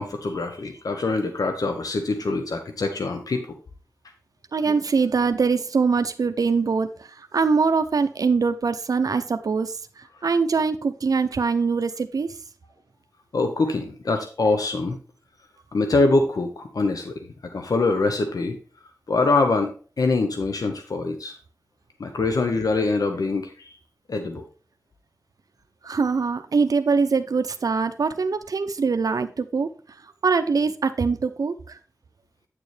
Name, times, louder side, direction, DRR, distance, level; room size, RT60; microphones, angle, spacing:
voice 1, 0.0-3.5 4.7-4.8 13.3-15.0 15.7-18.6 19.1-19.7 20.0-21.3 22.0-23.7 24.1-24.4, left 3 dB, 85° left, 6 dB, 0.9 m, -24 dB
voice 2, 4.5-12.4 25.8-29.7 30.2-31.8, right 4 dB, 85° right, 9 dB, 0.6 m, -23 dB
8.9 x 6.8 x 3.3 m, 0.38 s
wide cardioid pair, 60°, 6 cm